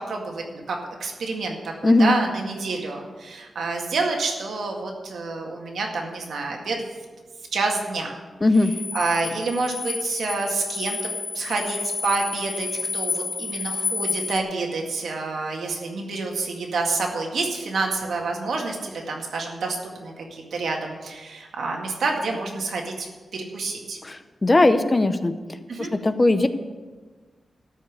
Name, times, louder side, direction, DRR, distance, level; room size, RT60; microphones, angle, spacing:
voice 1, 0.0-6.8 7.5-8.2 8.9-11.0 11.3-11.8 12.0-12.7 12.9-23.1 23.3-24.0 25.7-25.9, right 3 dB, 90° right, 1 dB, 1.9 m, -28 dB
voice 2, 1.8-2.1 8.4-8.7 24.0-25.3 25.9-26.5, left 2 dB, 25° left, 10 dB, 0.6 m, -18 dB
sound 1, 8.5-14.4, left 4 dB, 60° left, 0.7 m, -30 dB
13.5 x 5.5 x 8.4 m, 1.4 s
wide cardioid pair, 125°, 0 cm